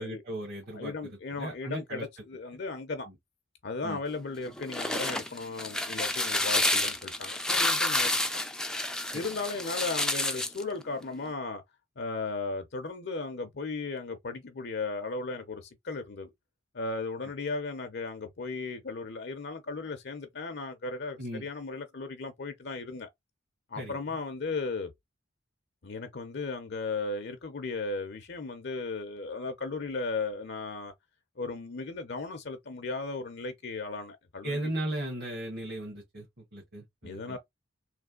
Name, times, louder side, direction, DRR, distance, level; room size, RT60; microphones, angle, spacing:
voice 1, 0.0-2.1 3.1-3.2 3.8-4.0 9.1-9.2 21.2-21.5 23.7-24.0 34.4-37.4, right 1 dB, 50° right, 1.3 m, -37 dB
voice 2, 0.7-3.1 3.6-8.2 9.1-11.6 12.0-16.3 16.7-23.1 23.7-24.9 25.8-30.9 31.4-34.6 37.0-37.4, left 3 dB, 55° left, 0.6 m, -36 dB
sound 1, 4.5-10.6, left 1 dB, 5° left, 0.4 m, -29 dB
3.3 x 3.2 x 3.7 m
head